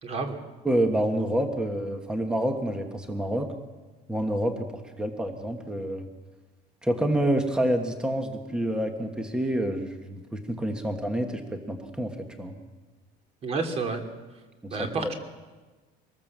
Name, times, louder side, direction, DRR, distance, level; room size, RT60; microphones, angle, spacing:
voice 1, 0.0-0.4 13.4-14.0 14.7-15.1, right 4 dB, 30° right, 5 dB, 2.7 m, -29 dB
voice 2, 0.6-3.5 4.1-6.1 6.8-12.6 14.6-15.1, right 1 dB, 5° right, 5 dB, 1.4 m, -28 dB
24.0 x 19.5 x 7.5 m, 1.3 s
cardioid pair, 175°, 19 cm